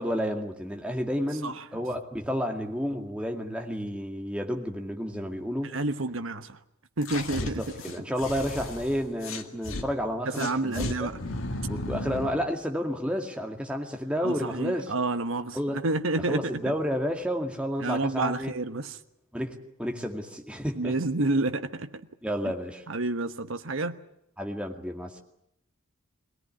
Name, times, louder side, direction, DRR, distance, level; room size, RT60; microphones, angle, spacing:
voice 1, 0.0-5.7 7.4-11.1 11.7-14.9 15.5-15.8 16.3-18.5 19.3-21.0 22.2-22.8 24.4-25.2, equal, 5° right, 2.2 m, -31 dB
voice 2, 5.6-6.6 7.0-7.6 10.3-11.2 14.2-16.7 17.8-19.0 20.7-21.9 22.9-24.0, right 2 dB, 70° right, 1.1 m, -29 dB
sound 1, 7.0-9.9 10.3-12.4, left 2 dB, 70° left, 2.1 m, -34 dB
23.0 x 18.0 x 9.8 m
head